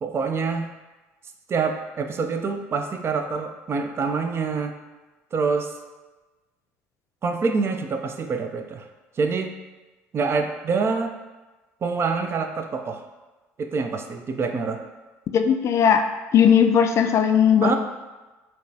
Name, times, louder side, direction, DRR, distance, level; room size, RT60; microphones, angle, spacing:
voice 1, 0.0-0.7 1.5-4.8 5.3-5.7 7.2-8.8 9.2-9.5 10.1-11.1 11.8-13.0 13.6-14.8 17.6-17.8, right 4 dB, 40° right, 6 dB, 0.4 m, -26 dB
voice 2, 15.3-16.0 16.3-17.8, left 8 dB, 45° left, 6 dB, 0.3 m, -17 dB
5.3 x 2.2 x 2.7 m, 1.2 s
hypercardioid pair, 65°, 7 cm